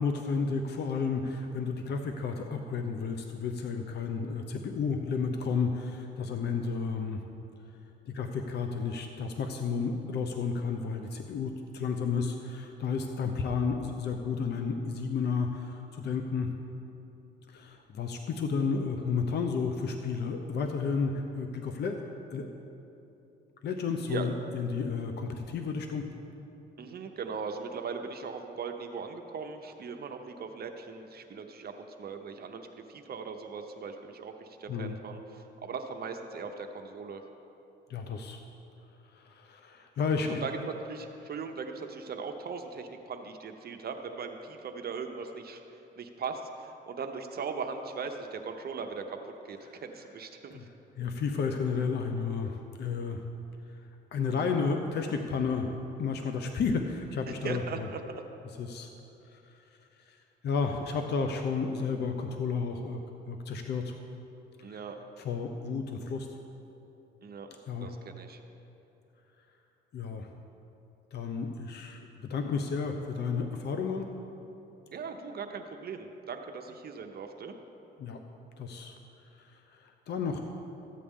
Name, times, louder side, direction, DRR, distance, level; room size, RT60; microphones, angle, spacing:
voice 1, 0.0-7.2 8.1-16.5 17.5-22.0 22.3-22.5 23.6-26.0 34.7-35.0 37.9-38.4 39.1-40.4 50.5-50.6 51.0-53.2 53.7-53.8 54.1-55.7 56.0-57.9 58.6-58.9 59.3-59.6 60.1-60.2 60.4-63.0 63.3-63.9 64.6-64.8 65.2-66.3 67.7-67.9 69.9-70.3 71.1-74.1 78.0-78.2 78.6-79.0 79.3-80.4, left 5 dB, 60° left, 5 dB, 0.7 m, -32 dB
voice 2, 26.8-37.2 40.4-50.6 57.4-58.2 64.6-65.0 67.2-68.4 74.9-77.6, right 5 dB, 50° right, 5 dB, 0.8 m, -39 dB
14.0 x 8.4 x 3.7 m, 2.9 s
cardioid pair, 90°, 20 cm